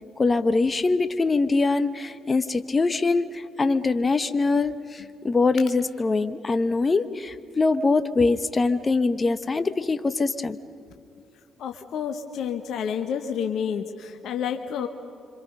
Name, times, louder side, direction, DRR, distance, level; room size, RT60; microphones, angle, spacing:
voice 1, 0.2-10.6, left 3 dB, 35° left, 12 dB, 1.1 m, -23 dB
voice 2, 11.6-14.9, left 7 dB, 65° left, 6 dB, 1.2 m, -29 dB
27.0 x 26.0 x 5.4 m, 2.4 s
hypercardioid pair, 45°, 0 cm